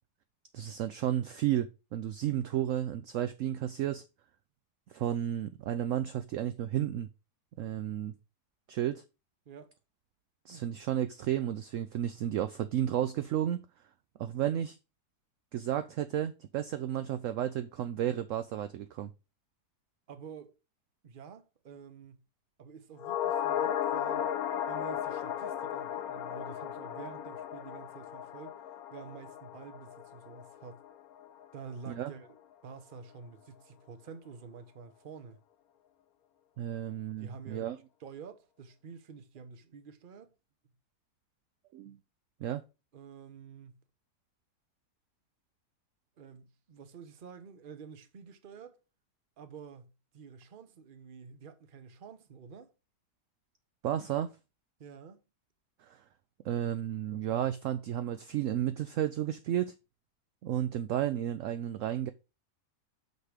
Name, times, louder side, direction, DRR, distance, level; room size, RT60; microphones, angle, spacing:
voice 1, 0.5-4.0 4.9-7.1 7.6-8.1 8.7-9.0 10.5-13.6 14.2-14.8 15.5-19.1 31.9-32.1 36.6-37.8 41.7-42.0 42.4-42.6 53.8-54.3 55.8-56.0 56.4-59.7 60.4-62.1, right 11 dB, 70° right, 0.8 m, -32 dB
voice 2, 9.5-9.8 20.1-20.6 21.0-22.2 22.6-24.3 24.7-28.6 28.9-30.8 31.5-32.3 32.6-35.4 36.9-40.3 42.9-43.8 46.2-48.8 49.4-52.7 54.8-55.2, right 6 dB, 40° right, 0.8 m, -49 dB
sound 1, 23.0-31.5 31.7-31.8, left 10 dB, 70° left, 1.1 m, -35 dB
6.1 x 5.3 x 5.0 m
omnidirectional pair, 1.7 m